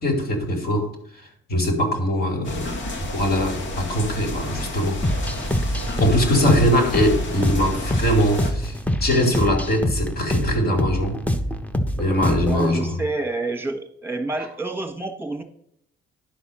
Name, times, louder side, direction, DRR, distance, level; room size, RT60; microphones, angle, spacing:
voice 1, 0.0-0.9 1.5-2.7 3.0-5.0 6.0-11.2 12.0-12.9, equal, 50° left, 4 dB, 2.4 m, -22 dB
sound 1, 2.4-8.5, left 1 dB, 75° left, 1.8 m, -30 dB
sound 2, 5.0-12.7, equal, 5° left, 0.9 m, -25 dB
voice 2, 12.4-15.4, right 2 dB, 10° right, 5 dB, 1.4 m, -28 dB
10.5 x 4.1 x 6.2 m, 0.68 s
cardioid pair, 90°, 20 cm